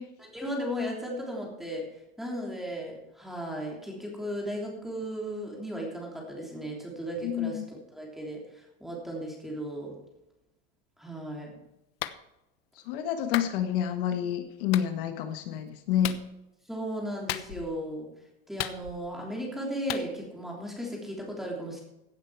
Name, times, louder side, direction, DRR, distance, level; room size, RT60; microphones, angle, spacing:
voice 1, 0.2-1.9 2.2-9.9 11.0-11.6 16.7-18.1 18.5-21.8, equal, ahead, -2 dB, 3.2 m, -36 dB
voice 2, 7.2-7.6 12.9-16.1, left 10 dB, 60° left, 7 dB, 1.5 m, -28 dB
Clapping, 12.0-12.2 13.3-13.5 14.7-14.9 16.0-16.2 17.3-17.7 18.6-19.2 19.9-20.1, left 14 dB, 80° left, 1.0 m, -34 dB
16.0 x 8.5 x 4.7 m, 0.91 s
supercardioid pair, 175°, 30 cm